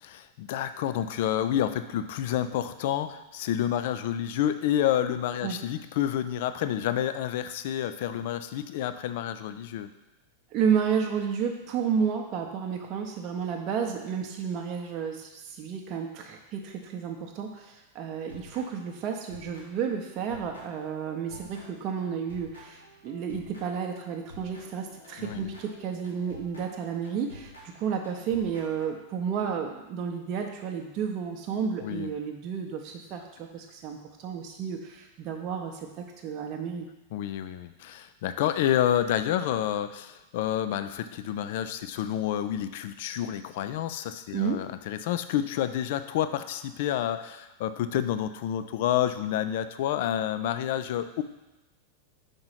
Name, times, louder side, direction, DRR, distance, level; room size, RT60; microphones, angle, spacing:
voice 1, 0.0-9.9 25.2-25.5 31.8-32.1 37.1-51.2, left 11 dB, 50° left, 11 dB, 0.4 m, -29 dB
voice 2, 10.5-36.9 44.3-44.6, right 7 dB, 35° right, 2 dB, 0.7 m, -31 dB
sound 1, 18.3-20.0 20.3-23.9 24.3-28.9, left 1 dB, 80° left, 2.1 m, -50 dB
5.3 x 4.8 x 5.6 m, 1.0 s
figure-of-eight pair, 90°, 0 cm